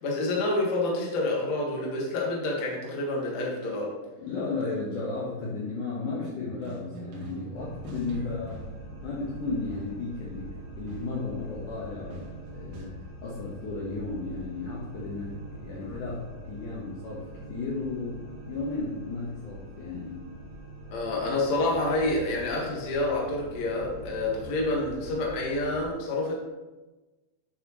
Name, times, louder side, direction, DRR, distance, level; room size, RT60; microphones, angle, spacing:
voice 1, 0.0-3.9 15.8-16.0 20.9-26.4, left 2 dB, 65° left, -2 dB, 1.7 m, -28 dB
voice 2, 4.2-8.7 9.0-10.5 10.8-12.9 13.2-20.2, left 3 dB, 80° left, -6 dB, 1.8 m, -34 dB
sound 1, 6.4-8.9 9.7-10.1 10.9-11.4 12.1-12.9, right 3 dB, 75° right, 3.4 m, -43 dB
sound 2, 7.5-25.8, right 1 dB, 40° right, 2.6 m, -44 dB
10.0 x 6.1 x 3.0 m, 1.2 s
omnidirectional pair, 5.4 m